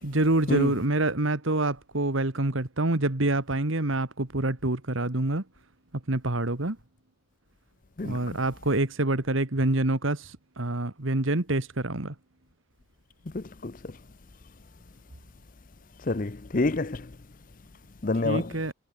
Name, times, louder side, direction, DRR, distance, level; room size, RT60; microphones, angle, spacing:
voice 1, 0.0-5.4 6.1-6.8 8.0-12.1 18.2-18.7, right 2 dB, 65° right, 1.8 m, -26 dB
voice 2, 13.3-13.7 16.1-17.1 18.0-18.5, left 2 dB, 40° left, 0.7 m, -27 dB
head